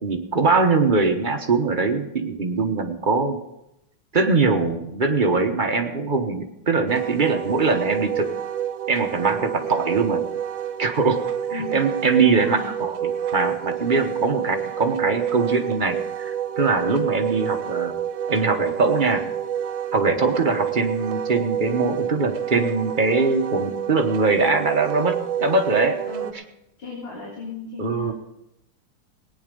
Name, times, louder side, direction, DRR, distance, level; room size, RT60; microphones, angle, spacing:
voice 1, 0.0-3.4 4.1-8.3 8.9-10.2 10.8-11.2 11.5-17.9 18.3-19.3 19.9-26.0 27.8-28.1, right 4 dB, 30° right, 4 dB, 0.9 m, -22 dB
Wind instrument woodwind instrument, 6.9-26.3, right 9 dB, 75° right, 1.5 m, -28 dB
voice 2, 12.2-12.7 14.1-14.4 26.1-26.3 26.8-28.1, left 2 dB, 65° left, -5 dB, 3.8 m, -35 dB
18.5 x 9.4 x 5.3 m, 0.86 s
omnidirectional pair, 2.2 m